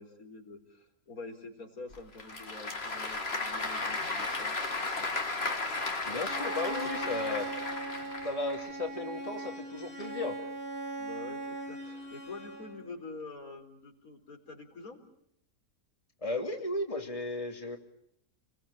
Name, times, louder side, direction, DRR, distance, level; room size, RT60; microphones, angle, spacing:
voice 1, 0.0-5.2 11.0-15.0, left 3 dB, 90° left, 2 dB, 4.7 m, -47 dB
Applause / Crowd, 1.9-8.7, left 3 dB, 45° left, 2.5 m, -35 dB
voice 2, 6.1-7.5 8.2-10.4 16.2-17.8, left 2 dB, 25° left, 3 dB, 2.8 m, -35 dB
Bowed string instrument, 6.2-12.9, right 2 dB, 40° right, 6.3 m, -40 dB
29.5 x 21.5 x 8.5 m, 0.72 s
omnidirectional pair, 1.5 m